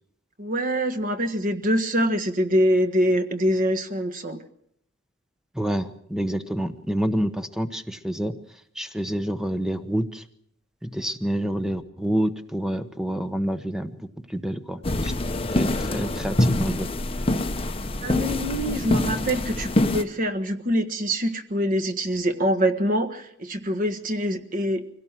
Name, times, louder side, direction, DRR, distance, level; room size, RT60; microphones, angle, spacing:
voice 1, 0.4-4.4 18.0-24.8, equal, 45° right, 8 dB, 1.6 m, -24 dB
voice 2, 5.5-10.2 10.8-15.1 15.5-16.9, equal, 5° right, 9 dB, 1.1 m, -28 dB
sound 1, 14.8-20.0, left 1 dB, 30° left, 1.1 m, -25 dB
23.5 x 17.5 x 7.5 m, 0.71 s
head